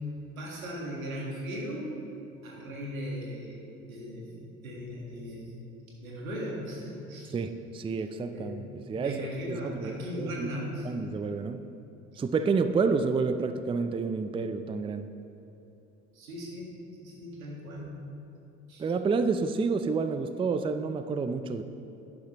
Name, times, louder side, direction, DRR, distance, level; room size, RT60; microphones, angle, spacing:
voice 1, 0.3-2.0 2.4-5.6 6.0-7.3 8.3-10.9 16.1-16.7 17.0-18.0 18.7-18.8, equal, 85° right, -2 dB, 1.7 m, -38 dB
voice 2, 7.3-10.5 10.8-11.7 12.2-15.1 18.8-21.6, right 4 dB, 15° right, 10 dB, 0.4 m, -29 dB
11.5 x 9.5 x 3.0 m, 3.0 s
hypercardioid pair, 60°, 40 cm